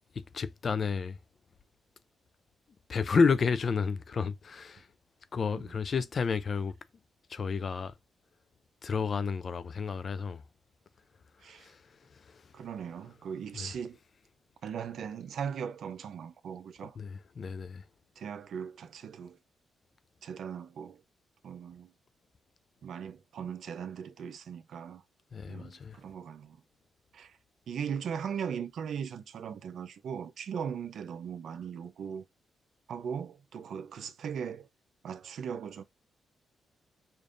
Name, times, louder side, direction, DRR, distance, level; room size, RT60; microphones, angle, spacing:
voice 1, 0.1-1.2 2.9-4.9 5.3-6.8 7.3-7.9 8.8-10.4 11.4-12.7 13.5-13.7 17.0-17.9 25.3-26.0, left 5 dB, 50° left, 0.4 m, -31 dB
voice 2, 11.4-11.7 12.5-14.0 14.6-17.0 18.2-19.4 20.2-21.0 21.4-21.9 22.8-25.0 25.5-26.6 27.1-27.4 27.7-32.2 32.9-34.7 35.0-35.8, right 7 dB, 70° right, 0.6 m, -39 dB
5.1 x 2.6 x 2.5 m
cardioid pair, 80°, 0 cm